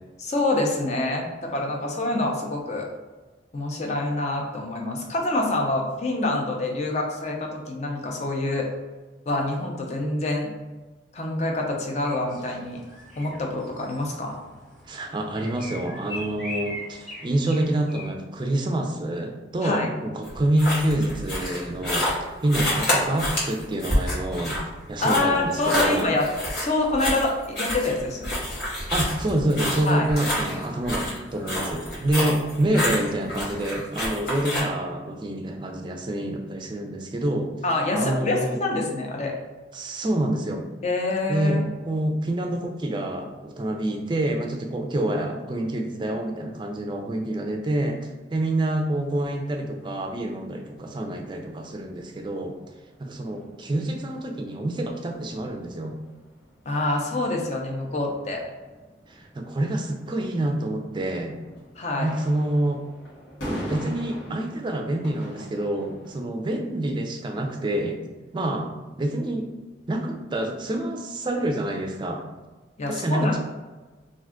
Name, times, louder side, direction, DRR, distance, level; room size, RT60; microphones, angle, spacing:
voice 1, 0.2-2.9 3.5-8.7 9.3-10.5 11.1-12.8 13.2-14.4 19.6-19.9 25.0-26.3 26.6-28.4 29.9-30.1 37.6-39.3 40.8-41.7 56.7-58.4 61.8-62.1 72.8-73.4, left 2 dB, 40° left, 1 dB, 0.5 m, -26 dB
sound 1, 12.0-18.1, left 1 dB, ahead, 0.8 m, -41 dB
voice 2, 14.9-22.2 22.4-24.6 24.9-26.1 28.9-37.5 37.9-38.6 39.7-40.7 41.3-52.6 53.0-55.9 59.1-61.4 62.0-62.8 63.7-68.0 68.3-68.7 69.0-69.5 69.9-72.2 72.9-73.4, right 1 dB, 25° right, 3 dB, 0.4 m, -27 dB
sound 2, 20.2-34.6, left 1 dB, 70° left, 1.3 m, -28 dB
sound 3, 48.4-66.2, equal, 90° left, 1.1 m, -43 dB
2.5 x 2.3 x 3.5 m, 1.2 s
head